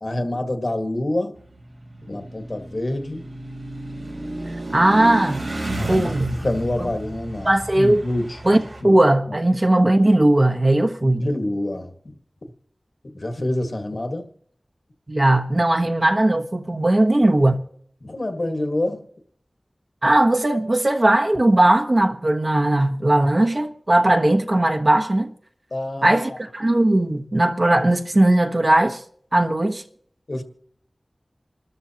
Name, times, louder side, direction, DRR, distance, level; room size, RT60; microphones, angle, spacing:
voice 1, 0.0-1.4 2.0-3.2 5.8-9.0 9.3-9.4 11.0-12.2 13.0-14.3 18.0-19.0 25.7-26.4 30.3-30.4, left 1 dB, 60° left, 1.7 m, -27 dB
sound 1, 1.4-8.8, right 1 dB, 80° right, 3.5 m, -31 dB
voice 2, 4.7-5.4 5.9-6.3 6.8-6.9 7.4-8.0 8.4-8.6 8.8-11.3 15.1-17.6 20.0-25.3 26.0-29.0 29.3-29.8, right 1 dB, 45° right, 1.2 m, -18 dB
27.5 x 13.5 x 2.9 m
wide cardioid pair, 50°, 0 cm